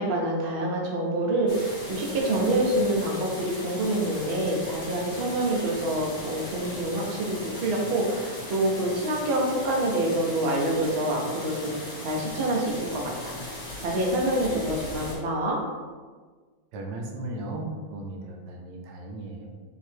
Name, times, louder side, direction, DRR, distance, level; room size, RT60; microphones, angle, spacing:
voice 1, 0.0-13.4 13.8-15.6, right 1 dB, 55° right, -1 dB, 0.7 m, -26 dB
sound 1, 1.5-15.1, left 1 dB, 30° left, 1.0 m, -38 dB
voice 2, 16.7-19.5, right 2 dB, 80° right, 1 dB, 1.4 m, -36 dB
3.9 x 2.9 x 4.4 m, 1.5 s
omnidirectional pair, 2.0 m